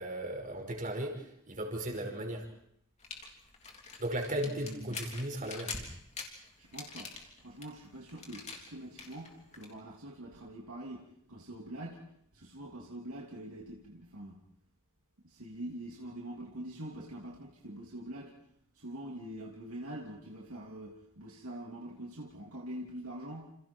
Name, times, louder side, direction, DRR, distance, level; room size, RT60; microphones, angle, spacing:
voice 1, 0.0-2.5 4.0-5.7, right 1 dB, 40° right, 3 dB, 5.2 m, -36 dB
sound 1, 3.0-9.7, left 4 dB, 30° left, 3.6 m, -45 dB
voice 2, 4.4-5.0 6.6-7.1 7.4-12.0 12.3-14.4 15.2-18.4 18.7-23.5, right 1 dB, 70° right, -1 dB, 2.9 m, -44 dB
28.5 x 28.5 x 4.6 m, 0.71 s
head